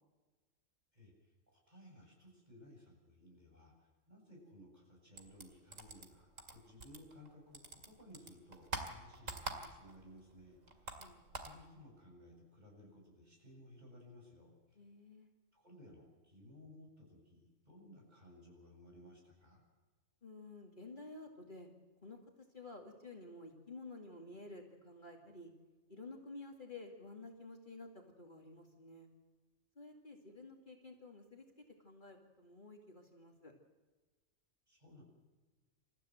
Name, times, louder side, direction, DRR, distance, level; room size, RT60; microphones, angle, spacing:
voice 1, 0.9-14.5 15.5-19.6 34.7-35.0, left 1 dB, 30° right, -1 dB, 8.1 m, -59 dB
sound 1, 5.1-7.3 7.5-10.0 10.3-11.6, right 2 dB, 75° right, 2.8 m, -45 dB
voice 2, 10.7-11.2 14.7-15.3 20.2-21.7 22.0-22.2 22.5-25.5 25.9-29.1 29.8-33.5, left 2 dB, 35° left, 1 dB, 2.6 m, -52 dB
29.0 x 14.5 x 7.9 m, 1.3 s
omnidirectional pair, 1.4 m